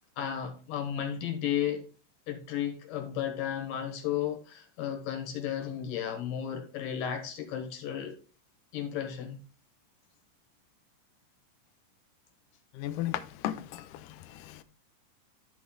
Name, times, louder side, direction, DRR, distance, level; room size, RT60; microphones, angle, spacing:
voice 1, 0.2-1.8 2.3-8.2 8.7-9.4, left 10 dB, 65° left, 2.8 m, -33 dB
voice 2, 12.8-14.6, left 13 dB, 90° left, 1.8 m, -36 dB
12.0 x 4.1 x 3.8 m
omnidirectional pair, 4.5 m